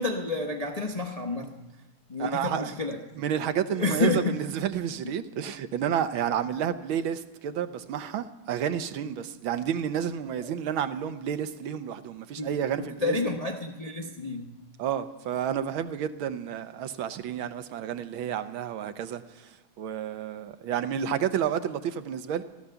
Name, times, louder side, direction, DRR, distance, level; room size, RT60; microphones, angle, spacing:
voice 1, 0.0-1.5 2.1-3.0 3.7-4.4 10.4-10.5 12.4-12.5 13.0-14.5, left 3 dB, 30° left, 1 dB, 0.6 m, -29 dB
voice 2, 2.2-2.7 3.2-13.2 14.8-19.2 19.8-22.4, right 9 dB, 75° right, 11 dB, 1.5 m, -30 dB
15.5 x 13.0 x 7.0 m, 1.0 s
omnidirectional pair, 2.3 m